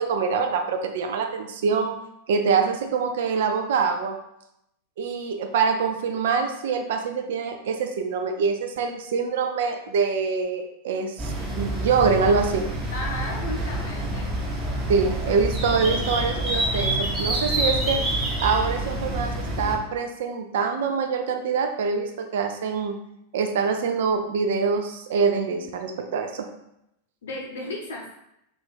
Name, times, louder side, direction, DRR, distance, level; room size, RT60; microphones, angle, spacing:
voice 1, 0.0-1.9 2.3-4.1 5.0-12.6 14.9-18.0 18.4-22.9 23.3-26.5, right 5 dB, 55° right, 5 dB, 0.4 m, -25 dB
sound 1, 11.2-19.8, right 1 dB, 20° right, 0.8 m, -27 dB
voice 2, 12.9-14.5 27.2-28.0, left 2 dB, 60° left, -1 dB, 0.8 m, -34 dB
2.4 x 2.4 x 3.4 m, 0.81 s
figure-of-eight pair, 90°, 0 cm